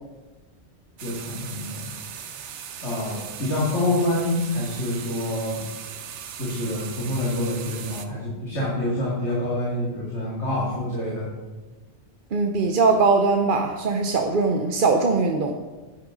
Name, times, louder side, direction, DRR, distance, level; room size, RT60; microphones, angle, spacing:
voice 1, 1.0-1.9 2.8-5.6 6.4-11.3, left 1 dB, 80° left, -7 dB, 2.7 m, -27 dB
sound 1, 1.0-8.1, right 8 dB, 80° right, 1.0 m, -38 dB
voice 2, 12.3-15.5, right 4 dB, 50° right, 4 dB, 0.8 m, -21 dB
11.0 x 9.8 x 3.9 m, 1.2 s
omnidirectional pair, 1.2 m